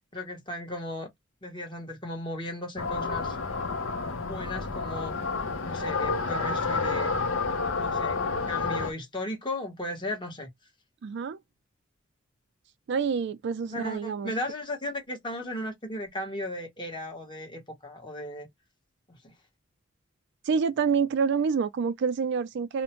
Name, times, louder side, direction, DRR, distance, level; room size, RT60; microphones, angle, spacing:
voice 1, 0.1-1.1 1.4-3.4 4.2-5.2 5.6-7.1 7.7-8.2 8.5-10.5 13.7-18.5 19.2-19.3, left 1 dB, 25° left, 1.0 m, -36 dB
sound 1, 2.8-8.9, left 4 dB, 75° left, 0.7 m, -29 dB
voice 2, 11.0-11.4 12.9-14.3 20.4-22.8, right 6 dB, 60° right, 0.3 m, -27 dB
2.4 x 2.1 x 2.9 m
head